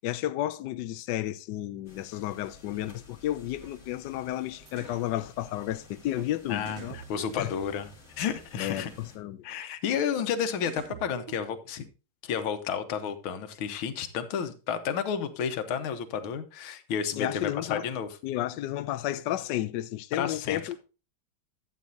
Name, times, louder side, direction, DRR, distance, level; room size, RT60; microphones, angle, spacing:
voice 1, 0.0-7.0 7.4-7.5 8.6-9.4 17.2-17.8 18.2-20.8, left 13 dB, 70° left, 1.1 m, -32 dB
sound 1, 1.8-9.2, left 3 dB, 35° left, 2.5 m, -54 dB
sound 2, 2.8-3.1 3.6-3.9 4.8-5.2 5.7-6.0 6.8-7.1 7.5-7.8, right 1 dB, 40° right, 5.2 m, -57 dB
sound 3, 4.7-5.0 6.2-6.3 6.7-8.1 8.7-9.0 10.2-10.3 10.7-11.8, right 9 dB, 65° right, 0.8 m, -46 dB
voice 2, 6.5-7.9 8.2-8.9 9.4-11.8 12.2-18.1 20.1-20.6, left 7 dB, 90° left, 1.8 m, -31 dB
11.5 x 8.4 x 2.7 m
omnidirectional pair, 2.2 m